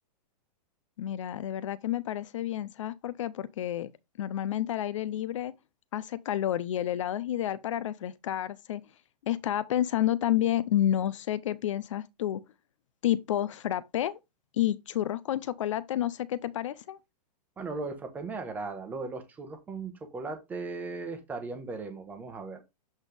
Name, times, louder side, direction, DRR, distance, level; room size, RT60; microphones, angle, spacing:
voice 1, 1.0-3.9 4.2-5.5 5.9-8.8 9.2-12.4 13.0-14.2 14.5-17.0, left 12 dB, 50° left, 0.5 m, -30 dB
voice 2, 17.6-22.6, right 3 dB, 10° right, 1.0 m, -37 dB
7.9 x 4.1 x 3.4 m
hypercardioid pair, 170°, 21 cm